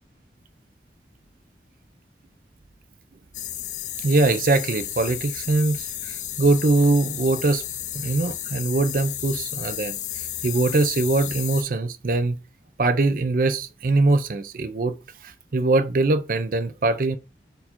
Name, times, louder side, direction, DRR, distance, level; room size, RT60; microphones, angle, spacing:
sound 1, 3.3-11.6, left 12 dB, 45° left, 0.4 m, -33 dB
voice 1, 4.0-7.6 7.9-12.4 12.8-15.0 15.2-17.2, right 2 dB, 50° right, 0.5 m, -22 dB
4.4 x 2.7 x 4.3 m
head